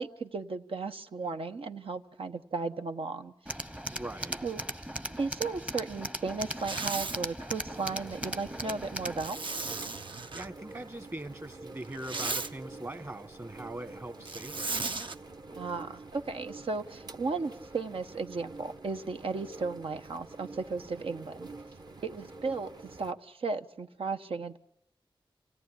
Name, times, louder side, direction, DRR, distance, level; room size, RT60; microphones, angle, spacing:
voice 1, 0.0-3.3 4.4-4.6 5.2-9.4 15.6-21.5 22.0-24.6, right 4 dB, 80° right, 7 dB, 1.2 m, -35 dB
Tools, 3.5-9.3, right 1 dB, 15° right, 0.9 m, -38 dB
voice 2, 3.9-4.4 10.3-14.9, right 1 dB, 30° right, 10 dB, 1.6 m, -42 dB
Zipper (clothing), 6.5-7.2 9.2-10.5 11.8-12.5 14.3-15.1, right 3 dB, 65° right, 1.0 m, -35 dB
sound 1, 7.5-23.1, right 3 dB, 50° right, 1.2 m, -48 dB
26.5 x 17.5 x 9.9 m, 0.75 s
wide cardioid pair, 95°, 9 cm